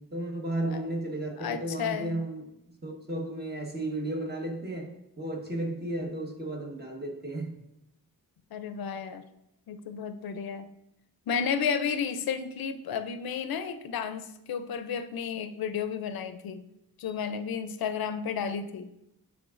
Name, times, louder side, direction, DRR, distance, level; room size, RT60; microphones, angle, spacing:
voice 1, 0.0-2.5 2.8-7.5, right 1 dB, 25° right, 1 dB, 1.2 m, -34 dB
voice 2, 1.4-2.2 8.5-9.2 9.7-10.7 11.3-16.6 17.0-18.9, left 7 dB, 80° left, 11 dB, 0.5 m, -32 dB
10.5 x 3.6 x 2.5 m, 0.85 s
wide cardioid pair, 90°, 35 cm